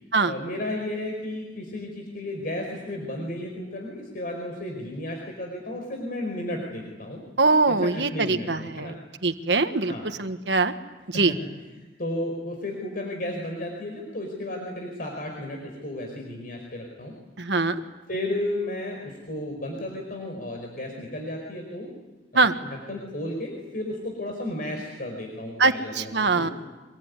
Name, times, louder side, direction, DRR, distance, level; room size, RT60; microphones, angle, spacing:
voice 1, 0.2-7.2 7.7-9.0 9.9-10.1 11.1-11.4 11.7-17.1 18.1-21.9 22.3-26.5, left 1 dB, 50° left, 1 dB, 5.0 m, -33 dB
voice 2, 7.4-8.9 9.2-9.9 10.2-10.7 11.1-11.3 17.4-17.8 22.3-22.5 25.6-26.5, right 3 dB, 70° right, 9 dB, 1.4 m, -22 dB
25.0 x 22.5 x 9.8 m, 1.2 s
head